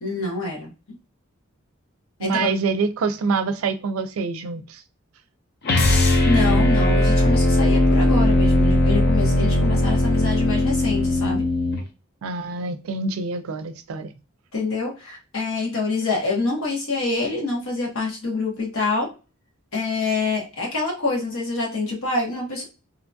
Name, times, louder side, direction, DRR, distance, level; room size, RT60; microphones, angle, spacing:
voice 1, 0.0-0.7 2.2-2.5 5.9-11.5 14.5-19.1 19.7-22.6, left 3 dB, 85° left, -1 dB, 1.1 m, -26 dB
voice 2, 2.2-4.8 12.2-14.1, right 4 dB, 85° right, 10 dB, 0.4 m, -26 dB
sound 1, 5.6-11.8, left 1 dB, 50° left, 0.5 m, -18 dB
2.8 x 2.3 x 2.6 m, 0.32 s
head